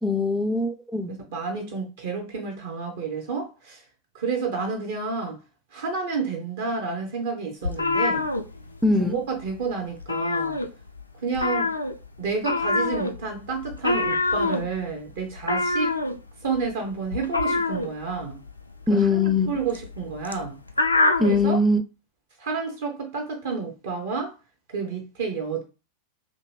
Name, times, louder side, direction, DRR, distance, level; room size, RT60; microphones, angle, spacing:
voice 1, 0.0-1.1 8.8-9.2 18.9-19.5 21.2-21.8, left 3 dB, ahead, 0.3 m, -21 dB
voice 2, 1.1-3.8 4.1-5.4 5.7-8.2 9.0-10.6 11.2-11.7 12.2-15.9 16.4-18.4 18.9-20.6 21.2-21.6 22.4-24.3 24.7-25.6, right 4 dB, 55° right, 0.6 m, -30 dB
sound 1, 7.6-9.1 9.4-9.6 9.9-11.0 11.3-21.4, left 3 dB, 85° left, 0.3 m, -25 dB
2.6 x 2.5 x 3.1 m
figure-of-eight pair, 90°, 0 cm